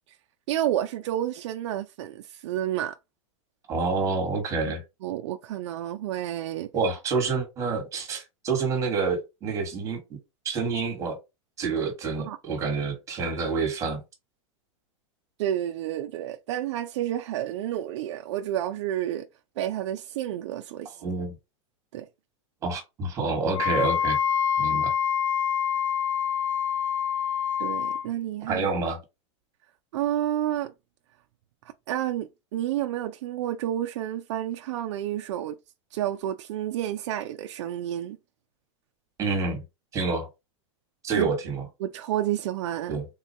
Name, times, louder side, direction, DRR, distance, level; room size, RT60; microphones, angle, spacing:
voice 1, 0.5-3.0 4.7-4.8 5.0-6.7 12.2-12.4 15.4-19.3 19.6-21.0 21.9-22.1 27.6-28.7 29.9-30.7 31.9-35.6 35.9-38.2 41.1-41.3 41.8-43.0, right 12 dB, 65° right, 0.4 m, -30 dB
voice 2, 3.7-4.8 6.7-10.2 10.4-11.2 11.6-14.0 21.0-21.3 22.6-24.2 24.6-24.9 28.5-29.0 39.2-39.6 39.9-40.3 41.0-41.6 42.9-43.1, right 4 dB, 20° right, 1.1 m, -28 dB
Wind instrument woodwind instrument, 23.5-28.1, left 8 dB, 90° left, 0.5 m, -26 dB
3.6 x 2.2 x 4.0 m
supercardioid pair, 155°, 16 cm